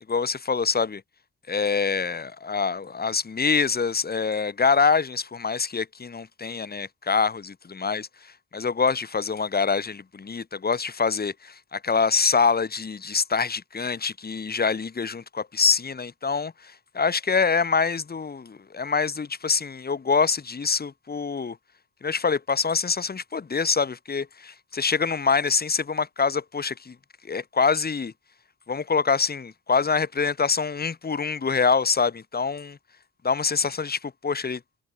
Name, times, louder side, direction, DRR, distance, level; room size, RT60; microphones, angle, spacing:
voice 1, 0.1-1.0 1.5-21.6 22.0-27.0 27.2-28.1 28.7-32.8 33.2-34.6, left 5 dB, 30° left, 2.4 m, -25 dB
cardioid pair, 90°, 30 cm